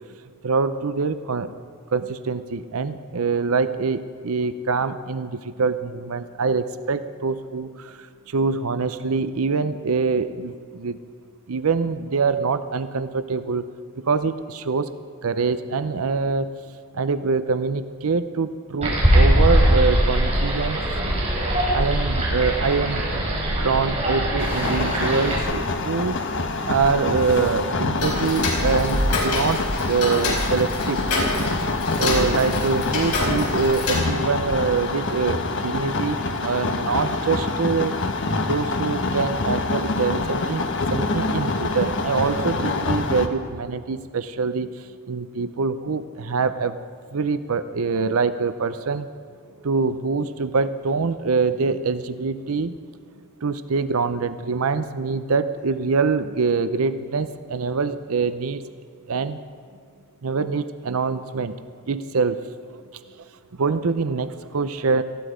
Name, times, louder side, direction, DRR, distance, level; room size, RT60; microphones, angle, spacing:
voice 1, 0.4-1.5 1.9-11.0 11.5-13.6 14.0-14.9 15.2-16.6 16.9-20.8 21.7-26.2 26.6-31.0 32.0-36.2 36.4-38.0 38.5-46.8 47.1-49.1 49.6-52.7 53.4-58.7 59.1-59.4 60.2-62.4 62.7-62.8 63.2-63.3 63.6-65.0, right 4 dB, 70° right, 12 dB, 0.6 m, -24 dB
sound 1, 18.8-25.4, equal, 30° right, 5.5 m, -21 dB
sound 2, 24.4-43.3, left 3 dB, 55° left, 1.2 m, -26 dB
Tick-tock, 28.0-34.0, left 2 dB, 85° left, 4.8 m, -26 dB
19.0 x 14.5 x 5.1 m, 2.1 s
head